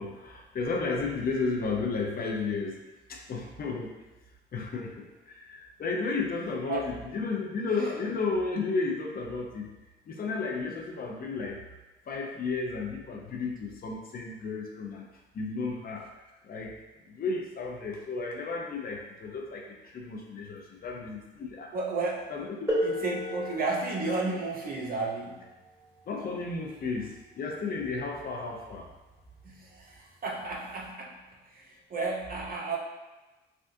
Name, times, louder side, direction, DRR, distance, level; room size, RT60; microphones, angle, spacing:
voice 1, 0.0-2.8 3.1-3.9 4.5-9.7 10.1-11.6 12.1-15.0 15.3-16.1 16.4-16.7 17.1-21.7 22.3-22.8 26.1-28.9, left 4 dB, 50° left, 1 dB, 0.5 m, -33 dB
voice 2, 21.7-22.3 22.8-25.5 29.4-31.2 31.5-32.8, right 3 dB, 45° right, -1 dB, 0.6 m, -32 dB
sound 1, 22.7-28.1 29.2-29.3 30.1-30.3, equal, 15° right, 1.1 m, -36 dB
3.4 x 2.4 x 2.6 m, 1.1 s
cardioid pair, 90°, 20 cm